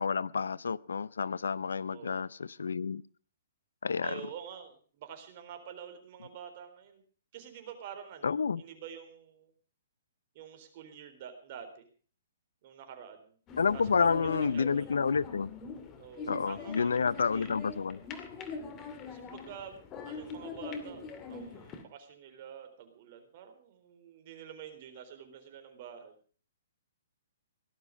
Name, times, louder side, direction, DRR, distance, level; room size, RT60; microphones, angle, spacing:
voice 1, 0.0-3.0 3.8-4.2 8.2-8.6 13.6-15.5 16.3-18.0, left 5 dB, 80° left, 0.6 m, -29 dB
voice 2, 1.9-2.3 4.0-7.0 7.3-9.5 10.3-11.9 12.6-13.4 13.7-15.0 16.0-17.5 19.1-19.8 20.1-21.0 21.3-26.1, right 8 dB, 45° right, 3.9 m, -47 dB
sound 1, 13.5-21.8, left 4 dB, 25° left, 2.4 m, -43 dB
17.5 x 12.0 x 5.2 m
hypercardioid pair, 135°, 0 cm